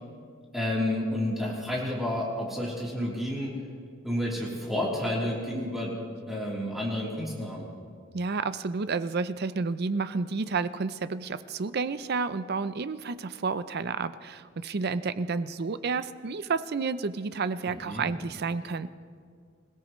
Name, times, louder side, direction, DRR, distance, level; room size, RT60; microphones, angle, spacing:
voice 1, 0.5-3.5 4.0-6.0 6.3-7.7 17.6-18.1, left 1 dB, ahead, -6 dB, 3.4 m, -30 dB
voice 2, 8.1-18.9, right 4 dB, 50° right, 13 dB, 0.5 m, -30 dB
26.5 x 17.0 x 3.1 m, 2.1 s
head